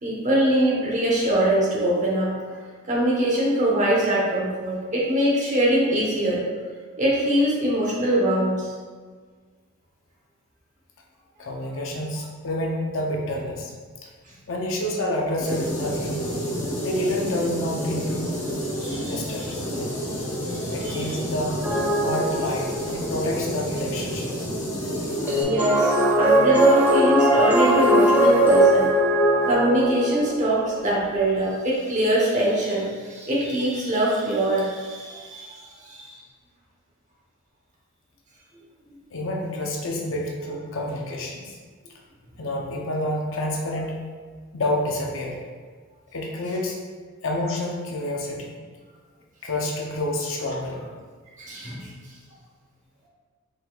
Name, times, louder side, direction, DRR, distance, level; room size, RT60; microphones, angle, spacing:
voice 1, 0.0-2.6 2.9-6.4 7.0-8.7 18.8-19.5 20.4-21.1 25.4-28.9 29.4-36.2 51.4-51.9, right 1 dB, 35° right, -5 dB, 1.0 m, -23 dB
voice 2, 11.4-13.7 14.0-14.1 14.5-16.3 16.8-18.3 19.1-19.9 20.7-21.7 22.0-24.3 25.9-26.1 39.1-41.6 42.4-44.0 44.5-45.4 46.1-46.8 47.2-48.6 49.4-50.8, left 1 dB, 60° left, -1 dB, 0.6 m, -28 dB
sound 1, 15.4-25.4, equal, 35° left, 1.0 m, -30 dB
sound 2, 21.6-23.0 25.3-30.5, right 1 dB, 5° right, 0.4 m, -20 dB
4.8 x 4.0 x 2.3 m, 1.5 s
head